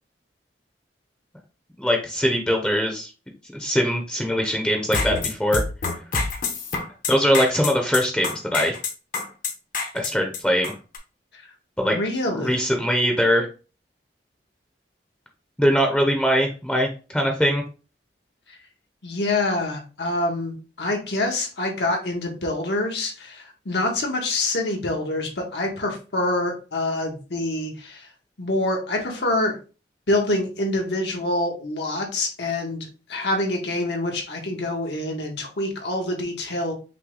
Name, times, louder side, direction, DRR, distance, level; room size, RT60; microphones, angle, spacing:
voice 1, 1.8-3.1 3.5-5.6 7.1-8.7 9.9-10.7 11.8-11.9 12.3-13.5 15.6-17.6, equal, 5° left, 2 dB, 0.7 m, -22 dB
sound 1, 4.8-11.0, left 4 dB, 50° left, 1.0 m, -27 dB
voice 2, 11.8-12.6 18.5-18.6 19.0-28.1 28.4-29.6 30.1-36.7, left 2 dB, 75° left, 1 dB, 1.4 m, -26 dB
5.7 x 2.3 x 3.8 m, 0.34 s
head